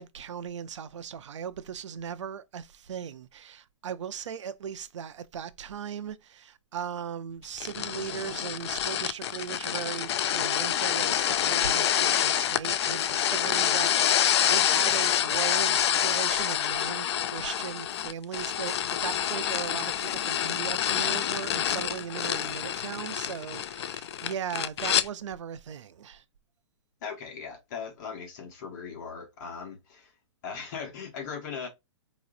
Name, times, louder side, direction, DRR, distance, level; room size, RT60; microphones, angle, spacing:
voice 1, 0.0-26.2, right 8 dB, 80° right, 0.6 m, -38 dB
sound 1, 7.6-25.1, left 10 dB, 65° left, 0.4 m, -27 dB
voice 2, 27.0-30.1 30.4-31.7, left 6 dB, 40° left, 1.6 m, -39 dB
4.9 x 3.0 x 2.6 m
hypercardioid pair, 170°, 15 cm